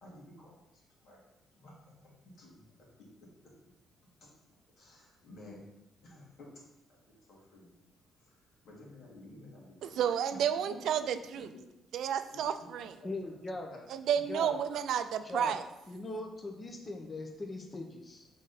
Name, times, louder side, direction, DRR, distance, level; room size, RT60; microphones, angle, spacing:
voice 1, 0.0-1.2 1.6-1.8 2.2-3.1 3.4-3.5 4.2-4.3 4.8-5.6 6.0-6.6 7.1-7.8 8.2-10.0 10.3-11.6 12.3-12.7 13.0-13.8 14.7-14.8, left 2 dB, 70° left, 2.1 m, -53 dB
voice 2, 9.8-11.5 11.9-12.9 13.9-15.6, right 9 dB, 80° right, 0.4 m, -31 dB
voice 3, 13.0-13.7 14.3-14.5 15.2-15.5 15.9-18.3, left 2 dB, 30° left, 0.8 m, -40 dB
6.2 x 3.8 x 4.1 m
cardioid pair, 90°, 0 cm